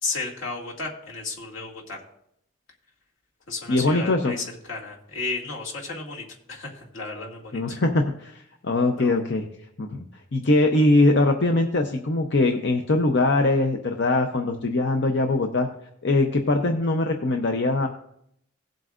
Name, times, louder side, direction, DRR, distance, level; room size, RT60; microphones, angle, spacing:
voice 1, 0.0-2.0 3.5-7.8 9.0-9.2, left 3 dB, 80° left, -2 dB, 2.3 m, -33 dB
voice 2, 3.7-4.4 7.5-9.5 9.8-10.0 10.3-15.7 16.0-17.9, left 2 dB, 60° left, 4 dB, 0.7 m, -22 dB
17.0 x 7.8 x 2.5 m, 0.74 s
head